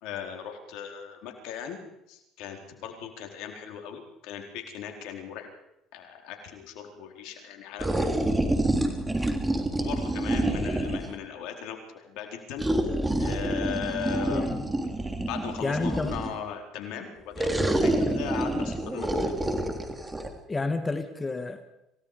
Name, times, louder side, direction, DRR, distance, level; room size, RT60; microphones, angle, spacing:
voice 1, 0.0-1.8 2.1-5.5 5.9-8.1 9.8-12.6 13.2-14.6 15.3-19.3, left 8 dB, 75° left, 4 dB, 4.3 m, -38 dB
sound 1, 7.8-11.2 12.6-16.4 17.4-20.3, right 1 dB, 15° right, 3.5 m, -27 dB
voice 2, 14.3-14.7 15.6-16.2 18.1-18.3 20.5-21.7, left 3 dB, 20° left, 7 dB, 2.3 m, -30 dB
27.5 x 18.0 x 5.2 m, 0.84 s
supercardioid pair, 80°, 0 cm